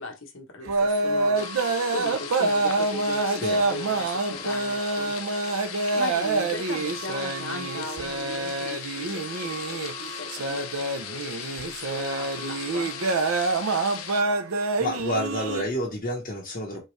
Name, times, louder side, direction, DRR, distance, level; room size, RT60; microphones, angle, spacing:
voice 1, 0.0-5.6 5.9-12.9, left 2 dB, 65° left, 1.2 m, -38 dB
sound 1, 0.7-15.6, right 3 dB, 85° right, 0.6 m, -27 dB
sound 2, 1.3-14.2, left 10 dB, 90° left, 0.5 m, -39 dB
voice 2, 3.3-3.6 14.8-16.8, equal, 40° left, 1.2 m, -29 dB
4.4 x 3.0 x 3.2 m
head